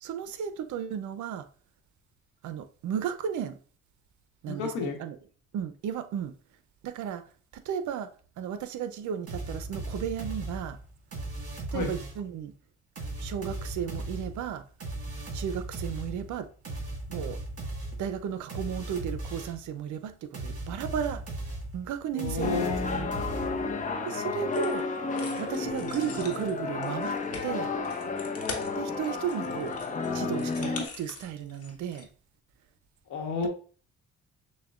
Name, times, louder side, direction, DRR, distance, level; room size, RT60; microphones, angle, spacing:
voice 1, 0.0-1.5 2.4-3.6 4.4-5.2 5.5-6.3 6.8-7.2 7.5-8.1 8.4-10.8 11.7-12.5 13.2-14.6 15.3-16.5 17.1-17.4 18.0-21.2 21.7-23.1 24.0-24.8 25.4-27.7 28.8-29.7 30.1-32.1 33.4-33.5, right 8 dB, 75° right, 0.6 m, -34 dB
voice 2, 4.5-5.0 11.7-11.9 22.1-23.2 33.1-33.5, left 4 dB, 80° left, 1.1 m, -31 dB
sound 1, 9.3-12.3 13.0-19.7 20.3-23.8, right 2 dB, 50° right, 1.7 m, -37 dB
sound 2, 22.4-30.9, left 4 dB, 25° left, 0.6 m, -32 dB
sound 3, 24.5-24.8 25.2-32.0, left 4 dB, 50° left, 1.0 m, -43 dB
6.4 x 2.2 x 2.4 m
cardioid pair, 90°, 30 cm